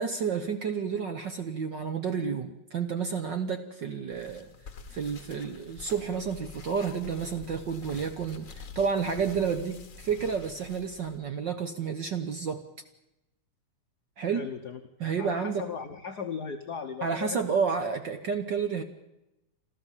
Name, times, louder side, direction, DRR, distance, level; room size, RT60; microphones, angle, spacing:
voice 1, 0.0-4.5 4.9-12.6 14.2-14.5 15.0-15.7 17.0-18.8, right 6 dB, 55° right, 7 dB, 1.3 m, -30 dB
sound 1, 4.1-11.2, left 5 dB, 40° left, 1.2 m, -47 dB
voice 2, 14.3-14.8 15.1-17.5, left 6 dB, 70° left, 6 dB, 0.9 m, -37 dB
26.5 x 14.0 x 7.3 m, 0.91 s
omnidirectional pair, 3.3 m